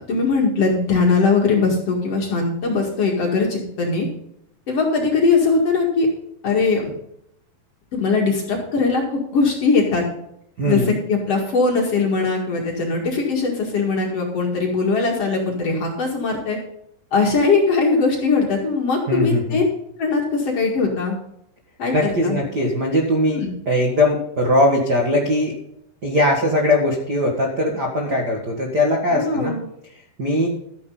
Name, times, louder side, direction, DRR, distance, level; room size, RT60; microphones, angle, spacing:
voice 1, 0.1-4.1 4.7-6.1 6.4-6.9 7.9-10.0 10.6-16.6 17.1-19.7 20.0-21.2 21.8-22.4 23.3-23.5 29.1-29.7, left 4 dB, 45° left, 0 dB, 2.4 m, -20 dB
voice 2, 10.6-10.9 19.1-19.6 21.9-25.5 26.0-29.5 30.2-30.5, left 1 dB, 45° right, 0 dB, 1.3 m, -20 dB
13.0 x 9.9 x 3.9 m, 0.77 s
omnidirectional pair, 4.7 m